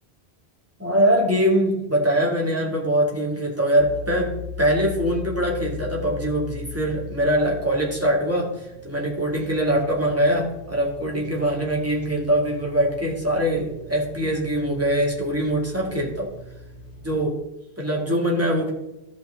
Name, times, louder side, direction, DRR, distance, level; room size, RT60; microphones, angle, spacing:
voice 1, 0.8-16.3 17.0-17.4 17.8-18.7, equal, 15° right, -2 dB, 2.3 m, -23 dB
sound 1, 3.8-17.2, left 4 dB, 30° left, 3.0 m, -39 dB
13.5 x 5.5 x 3.8 m, 0.95 s
omnidirectional pair, 1.1 m